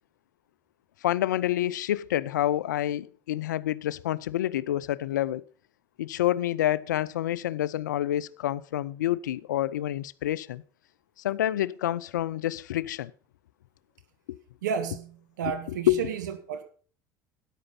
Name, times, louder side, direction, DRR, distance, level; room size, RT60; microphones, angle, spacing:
voice 1, 1.0-5.4 6.0-10.6 11.2-13.1 14.3-14.4 15.7-16.0, left 13 dB, 80° left, 0.5 m, -28 dB
voice 2, 14.6-16.6, right 7 dB, 75° right, 1.7 m, -32 dB
13.5 x 10.0 x 4.1 m
hypercardioid pair, 65°, 10 cm